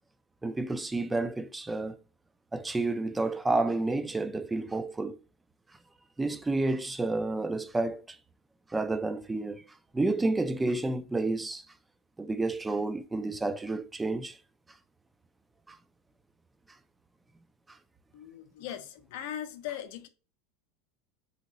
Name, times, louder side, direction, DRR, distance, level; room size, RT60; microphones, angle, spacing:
voice 1, 0.4-2.0 2.5-5.2 6.2-8.2 8.7-9.6 9.9-11.6 12.2-14.4 15.7-15.8, right 2 dB, 10° right, 0.3 m, -30 dB
voice 2, 18.1-20.1, left 10 dB, 70° left, 0.5 m, -39 dB
2.9 x 2.8 x 2.7 m
supercardioid pair, 110°, 0 cm